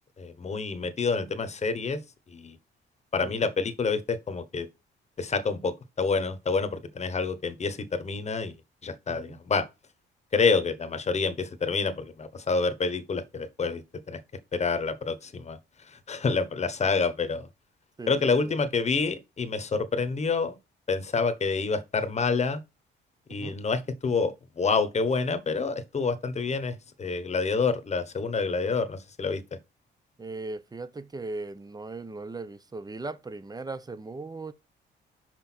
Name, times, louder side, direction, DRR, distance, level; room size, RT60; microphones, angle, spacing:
voice 1, 0.2-2.0 2.3-2.6 3.1-4.7 5.2-8.5 8.8-9.7 10.3-14.2 14.5-17.5 18.1-20.6 20.9-22.6 23.3-29.4, left 4 dB, 35° left, 1.1 m, -28 dB
voice 2, 9.1-9.4 18.0-18.5 23.3-23.6 30.2-34.5, right 3 dB, 20° right, 0.8 m, -38 dB
6.0 x 5.1 x 4.4 m
cardioid pair, 90°, 20 cm